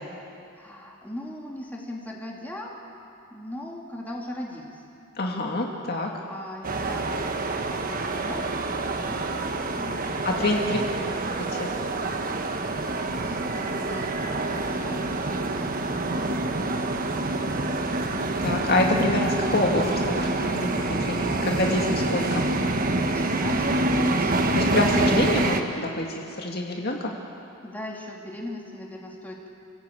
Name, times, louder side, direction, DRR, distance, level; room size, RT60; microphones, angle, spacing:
voice 1, 0.5-2.7 3.3-4.8 5.4-5.8 6.2-7.2 7.7-11.6 12.7-16.4 16.7-18.0 23.1-24.4 27.6-29.5, left 1 dB, 10° left, -2 dB, 3.0 m, -40 dB
voice 2, 5.2-6.1 10.2-10.8 11.6-11.7 18.4-22.5 24.6-27.1, left 2 dB, 50° left, 0 dB, 2.3 m, -26 dB
sound 1, 6.6-25.6, right 2 dB, 45° right, 1.3 m, -26 dB
29.5 x 16.0 x 8.8 m, 2.7 s
head